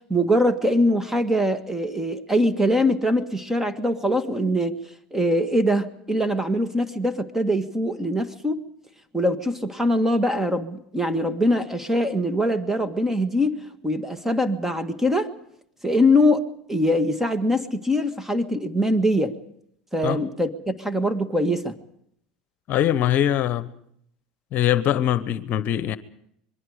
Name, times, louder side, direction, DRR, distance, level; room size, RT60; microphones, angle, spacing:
voice 1, 0.1-4.8 5.1-8.6 9.1-15.3 15.8-19.4 19.9-21.8, equal, 10° right, 1.7 m, -23 dB
voice 2, 22.7-23.7 24.5-26.0, left 11 dB, 50° left, 1.1 m, -22 dB
26.0 x 22.0 x 5.0 m
hypercardioid pair, 90°, 4 cm